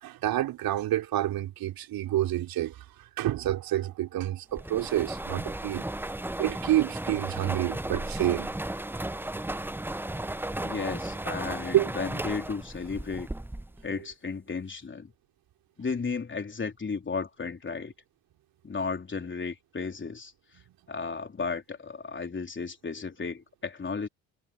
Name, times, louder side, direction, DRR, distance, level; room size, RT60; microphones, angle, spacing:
voice 1, 0.0-5.8 6.4-8.5 11.7-11.9, right 13 dB, 60° right, 3.4 m, -28 dB
sound 1, 4.6-13.9, right 1 dB, 5° right, 1.0 m, -35 dB
voice 2, 10.6-13.3 13.8-15.1 15.8-17.9 18.6-20.3 20.9-24.1, left 4 dB, 30° left, 3.8 m, -34 dB
hypercardioid pair, 50°, 41 cm